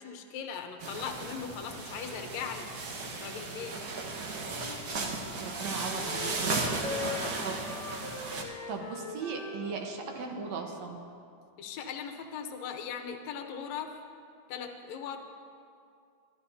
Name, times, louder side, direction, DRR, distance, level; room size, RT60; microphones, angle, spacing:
voice 1, 0.0-2.7 3.1-3.7 6.9-7.8 11.6-13.9 14.5-15.2, left 7 dB, 70° left, 4 dB, 2.1 m, -39 dB
sound 1, 0.8-8.4, right 3 dB, 85° right, 0.8 m, -35 dB
Wind instrument woodwind instrument, 4.4-10.8, left 3 dB, 45° left, 1.5 m, -42 dB
voice 2, 5.0-6.7 7.1-7.6 8.7-11.0, right 4 dB, 70° right, 2 dB, 2.2 m, -38 dB
24.5 x 12.0 x 2.8 m, 2.4 s
omnidirectional pair, 3.5 m